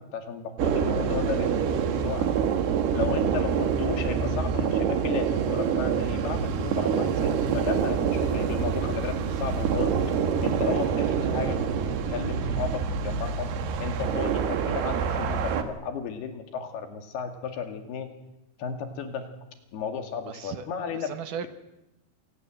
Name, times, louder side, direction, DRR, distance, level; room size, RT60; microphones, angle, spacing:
voice 1, 0.0-2.3 2.9-10.2 10.4-11.7 12.1-13.5 13.8-18.1 18.6-19.3 19.7-21.1, left 6 dB, 85° left, 6 dB, 4.3 m, -34 dB
sound 1, 0.6-15.6, right 7 dB, 90° right, 3.7 m, -26 dB
voice 2, 20.3-21.5, right 7 dB, 65° right, 10 dB, 2.5 m, -37 dB
27.0 x 19.0 x 7.8 m, 0.92 s
omnidirectional pair, 4.4 m